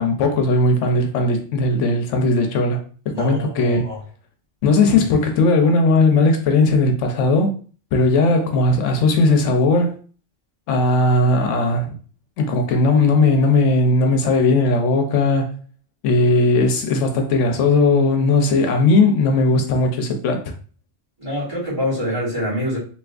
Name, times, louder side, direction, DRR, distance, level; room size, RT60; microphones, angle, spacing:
voice 1, 0.0-2.8 3.2-3.8 4.6-7.5 7.9-9.9 10.7-11.9 12.4-15.5 16.0-20.5, left 2 dB, 80° left, 0.9 m, -17 dB
voice 2, 3.1-4.0 21.2-22.8, equal, 25° right, 1.8 m, -25 dB
3.4 x 2.8 x 2.3 m
omnidirectional pair, 1.3 m